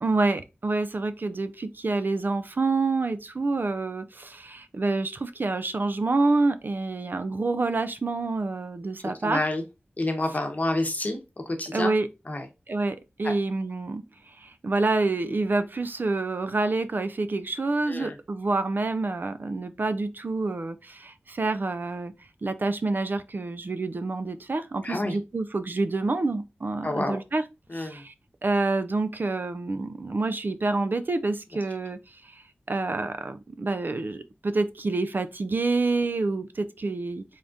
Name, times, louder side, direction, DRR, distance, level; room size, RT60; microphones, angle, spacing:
voice 1, 0.0-9.4 11.7-12.1 12.7-22.1 22.4-27.4 27.7-28.1 28.4-32.4 32.7-37.2, right 3 dB, 50° right, 0.3 m, -27 dB
voice 2, 9.2-9.6 10.0-11.9 12.3-12.5 13.2-13.3 17.9-18.2 24.8-25.2 26.8-27.2 27.7-28.0, left 2 dB, 40° left, 0.9 m, -28 dB
3.7 x 3.4 x 2.6 m
wide cardioid pair, 75°, 4 cm